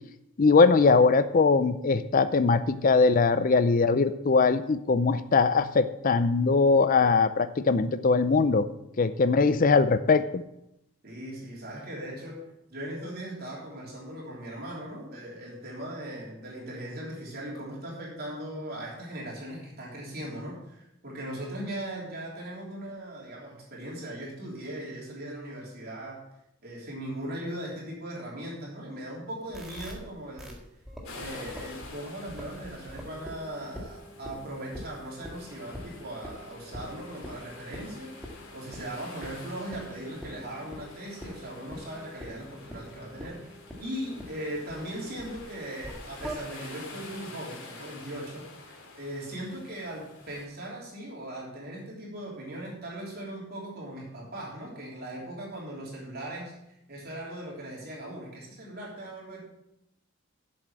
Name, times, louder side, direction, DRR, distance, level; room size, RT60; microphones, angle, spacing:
voice 1, 0.4-8.7 9.0-10.4, left 4 dB, 40° left, 12 dB, 0.4 m, -21 dB
voice 2, 11.0-12.4 12.7-26.2 26.6-30.6 31.1-56.5 56.9-59.4, right 1 dB, 45° right, -4 dB, 3.3 m, -39 dB
sound 1, 29.5-29.9 30.4-30.5 30.8-31.9 32.3-45.4 45.8-46.4, equal, ahead, 1.7 m, -45 dB
sound 2, 31.0-50.4, left 3 dB, 90° left, 2.6 m, -48 dB
8.0 x 7.5 x 7.3 m, 0.84 s
head